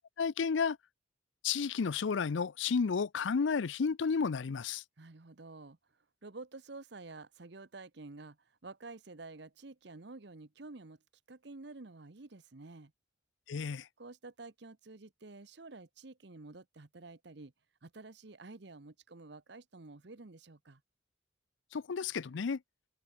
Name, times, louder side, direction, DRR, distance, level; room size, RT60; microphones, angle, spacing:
voice 1, 0.2-0.8 1.4-4.8 13.5-13.9 21.7-22.6, left 5 dB, 70° left, 0.5 m, -32 dB
voice 2, 5.0-5.8 6.2-11.0 11.3-12.9 14.0-17.5 17.8-20.8, right 3 dB, 60° right, 1.0 m, -50 dB
head